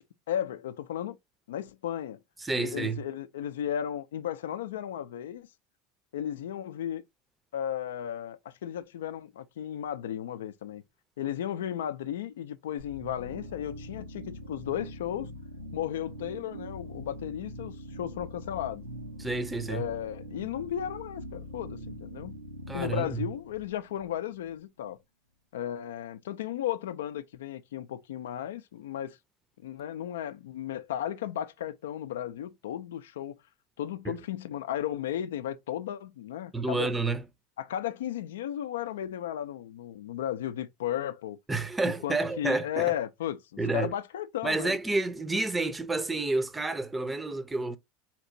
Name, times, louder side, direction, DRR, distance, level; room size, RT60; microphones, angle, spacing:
voice 1, 0.3-1.2 1.5-2.2 2.5-5.5 6.1-7.0 7.5-10.8 11.2-15.3 15.7-18.8 19.7-22.3 22.7-25.0 25.5-29.2 29.6-33.4 33.8-36.9 37.6-41.4 41.8-44.8, left 10 dB, 75° left, 0.4 m, -35 dB
voice 2, 2.4-3.0 19.2-19.9 22.7-23.3 34.1-34.2 36.5-37.2 41.5-42.9 43.6-43.9 44.4-47.8, right 3 dB, 15° right, 0.6 m, -29 dB
sound 1, 12.8-24.5, equal, 90° right, 0.7 m, -43 dB
4.3 x 2.9 x 2.6 m
hypercardioid pair, 80°, 0 cm